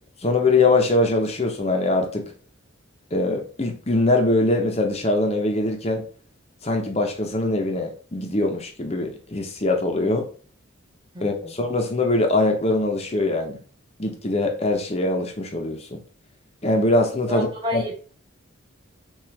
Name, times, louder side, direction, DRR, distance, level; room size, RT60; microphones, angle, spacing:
voice 1, 0.2-2.3 3.1-6.1 6.6-10.3 11.2-13.6 14.0-16.0 16.6-17.5 17.7-17.9, left 2 dB, 30° left, 4 dB, 0.7 m, -22 dB
voice 2, 11.1-11.5 17.3-17.9, left 1 dB, 20° right, 0 dB, 1.1 m, -30 dB
5.8 x 2.5 x 3.4 m, 0.41 s
head